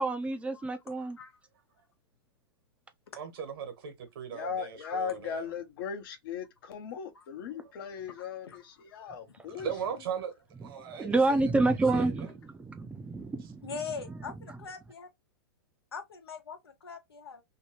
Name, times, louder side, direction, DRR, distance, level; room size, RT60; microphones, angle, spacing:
voice 1, 0.0-1.2 10.9-12.3 12.6-13.6 14.1-14.2, right 2 dB, 10° right, 0.5 m, -28 dB
voice 2, 3.1-5.5 7.6-7.9 9.6-12.4 13.4-13.5, right 7 dB, 70° right, 1.2 m, -39 dB
voice 3, 4.3-9.7, left 6 dB, 60° left, 0.9 m, -38 dB
voice 4, 13.6-15.1 15.9-17.4, left 5 dB, 90° left, 1.0 m, -41 dB
2.9 x 2.3 x 2.9 m
hypercardioid pair, 120°, 13 cm